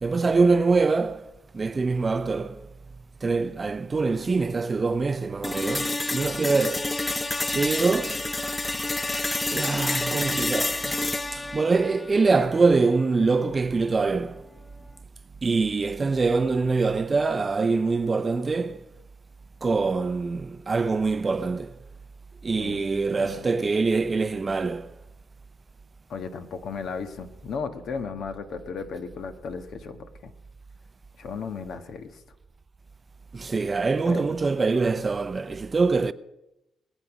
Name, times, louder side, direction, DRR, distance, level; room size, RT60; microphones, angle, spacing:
voice 1, 0.0-2.7 3.2-7.0 7.5-8.3 9.5-11.0 11.3-14.5 15.4-18.9 19.6-21.8 22.4-24.9 33.3-36.1, right 4 dB, 30° right, 0.6 m, -24 dB
sound 1, 5.4-13.4, left 2 dB, 15° left, 0.5 m, -29 dB
voice 2, 23.1-23.4 26.1-30.3 31.2-32.2 34.0-34.3, left 5 dB, 65° left, 1.5 m, -35 dB
20.5 x 8.5 x 6.1 m
cardioid pair, 90°, 0 cm